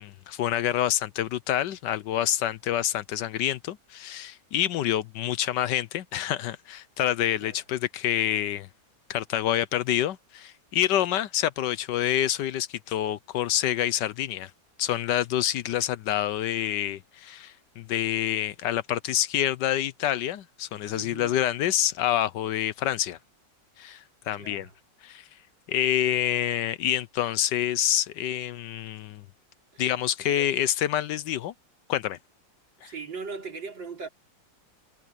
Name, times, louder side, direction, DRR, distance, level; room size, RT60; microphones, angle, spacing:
voice 1, 0.0-8.7 9.1-14.5 14.8-23.2 23.8-24.7 25.0-25.2 25.7-29.2 29.8-31.5 31.9-32.2 32.8-32.9, left 12 dB, 75° left, 1.2 m, -27 dB
voice 2, 20.9-21.4 24.4-24.7 26.1-26.4 29.7-29.9 30.3-30.5 32.8-34.1, right 4 dB, 80° right, 4.6 m, -40 dB
omnidirectional pair, 2.0 m